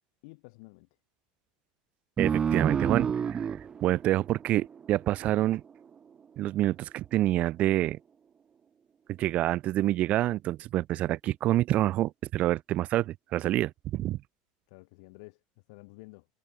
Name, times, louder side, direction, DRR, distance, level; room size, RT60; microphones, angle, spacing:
voice 1, 0.2-0.9 14.7-16.3, left 28 dB, 70° left, 3.8 m, -51 dB
Bass Voice, 2.2-5.3, right 7 dB, 25° right, 1.0 m, -29 dB
voice 2, 2.2-3.6 3.8-5.6 6.4-8.0 9.1-14.2, right 14 dB, 45° right, 0.4 m, -27 dB
supercardioid pair, 130°, 3 cm